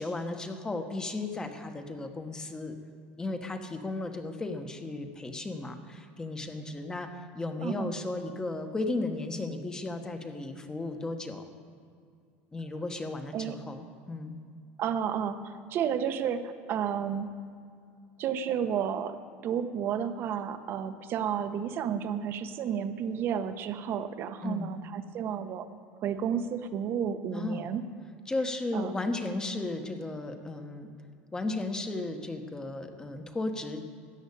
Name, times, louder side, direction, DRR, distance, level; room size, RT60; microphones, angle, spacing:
voice 1, 0.0-2.7 3.2-7.1 7.3-11.4 12.5-14.4 24.4-24.7 27.3-27.7 28.3-30.9 31.3-33.8, left 2 dB, 15° left, 6 dB, 1.2 m, -35 dB
voice 2, 7.6-7.9 13.3-13.6 14.8-17.3 18.2-19.2 19.4-25.7 26.0-27.8 28.7-29.0, right 8 dB, 45° right, 10 dB, 0.9 m, -31 dB
13.5 x 8.0 x 8.5 m, 2.3 s
supercardioid pair, 130°, 5 cm